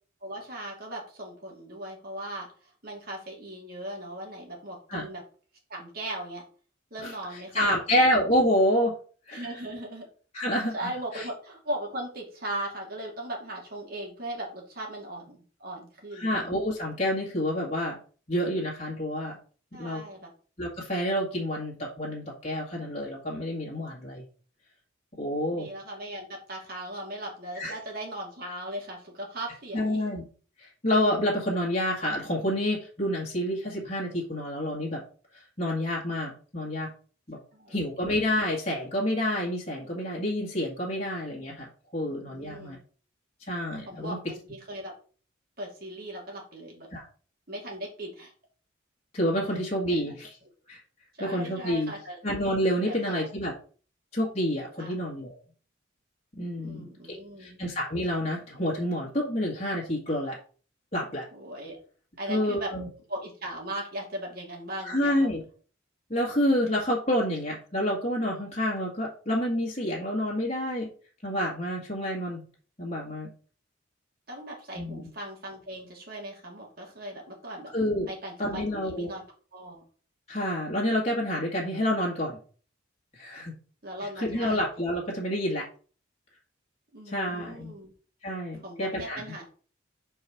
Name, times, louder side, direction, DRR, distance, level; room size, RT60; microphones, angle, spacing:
voice 1, 0.2-5.2 5.7-6.4 6.9-8.0 9.3-10.1 10.7-16.3 19.7-20.3 25.5-30.0 37.5-37.8 42.0-42.8 43.8-44.9 45.6-46.9 47.5-48.3 49.5-49.6 49.9-50.1 51.1-52.2 52.8-53.3 54.8-55.0 56.6-57.6 61.3-61.8 62.2-62.7 63.1-65.3 74.3-77.7 78.1-79.2 79.5-79.8 83.8-84.6 86.9-87.9 88.6-89.4, right 1 dB, 50° right, -1 dB, 2.6 m, -38 dB
voice 2, 7.5-8.9 9.3-9.5 10.3-10.7 11.1-11.2 16.2-18.0 18.3-19.4 19.8-20.0 20.6-24.2 25.2-25.7 27.6-27.7 29.7-30.2 30.6-35.0 35.3-36.9 37.3-37.4 37.7-42.8 43.4-44.2 46.9-47.1 49.1-50.4 50.7-50.8 51.2-51.9 52.2-53.5 54.1-55.4 56.4-60.4 60.9-61.3 62.3-62.9 64.8-65.4 66.1-70.9 71.2-72.4 72.8-73.3 74.7-75.0 77.7-78.1 78.4-79.1 80.3-82.4 83.1-83.5 84.2-85.6 87.1-87.7 88.2-89.2, equal, 35° left, -4 dB, 1.9 m, -28 dB
4.8 x 4.7 x 5.9 m, 0.41 s
head